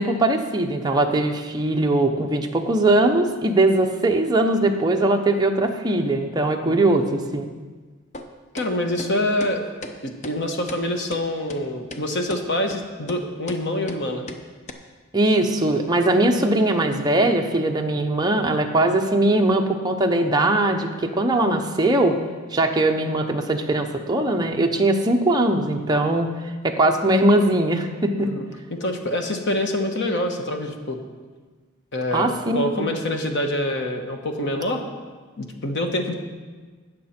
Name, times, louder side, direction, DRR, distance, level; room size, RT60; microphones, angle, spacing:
voice 1, 0.0-7.5 15.1-22.2 22.5-26.3 26.6-28.3 32.1-32.8, right 2 dB, 20° right, 2 dB, 0.8 m, -20 dB
sound 1, 8.1-8.3 8.6-8.7 9.0-9.1 9.4-9.5 9.8-9.9 10.2-10.4 10.7-10.8 11.1-11.2 11.5-11.6 11.9-12.0 12.3-12.4 12.7-12.8 13.1-13.2 13.5-13.6 13.9-14.0 14.3-14.4 14.7-14.8, left 1 dB, 30° left, 0.7 m, -36 dB
voice 2, 8.5-9.6 10.0-14.3 28.2-31.0 31.9-34.9 35.4-36.1, left 1 dB, 55° left, 4 dB, 1.2 m, -26 dB
18.0 x 6.6 x 4.4 m, 1.4 s
head